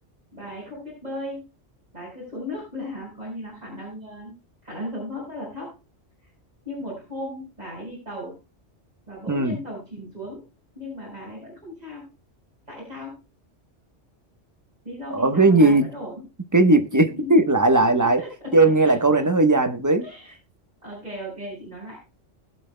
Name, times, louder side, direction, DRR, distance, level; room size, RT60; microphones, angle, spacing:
voice 1, 0.3-1.5 1.9-4.4 4.6-5.7 6.7-8.4 9.1-10.4 10.8-12.1 12.7-13.2 14.8-16.3 16.9-17.4 18.2-18.6 18.8-19.2 20.0-20.3 20.8-22.0, left 1 dB, 35° right, -6 dB, 5.6 m, -36 dB
voice 2, 15.1-15.9 16.5-18.2 18.5-20.0, right 2 dB, 15° right, 8 dB, 1.1 m, -18 dB
21.0 x 7.7 x 2.2 m, 0.30 s
omnidirectional pair, 1.2 m